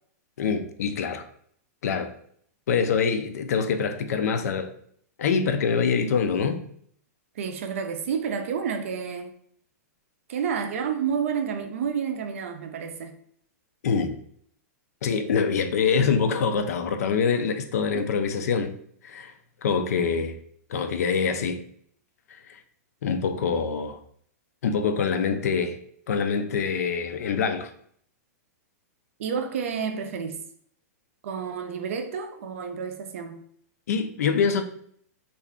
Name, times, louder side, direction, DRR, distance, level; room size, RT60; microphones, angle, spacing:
voice 1, 0.4-1.3 1.8-2.1 2.7-4.7 5.2-6.6 13.8-14.2 15.0-18.8 19.0-19.3 19.6-20.4 20.7-21.6 22.3-22.6 23.0-24.0 24.6-25.8 26.1-27.7 33.9-34.6, left 6 dB, 70° left, 0.4 m, -25 dB
voice 2, 7.4-9.4 10.3-13.2 20.2-20.3 29.2-30.4 31.2-33.4, right 7 dB, 55° right, 0.4 m, -30 dB
2.4 x 2.2 x 3.5 m
supercardioid pair, 170°, 9 cm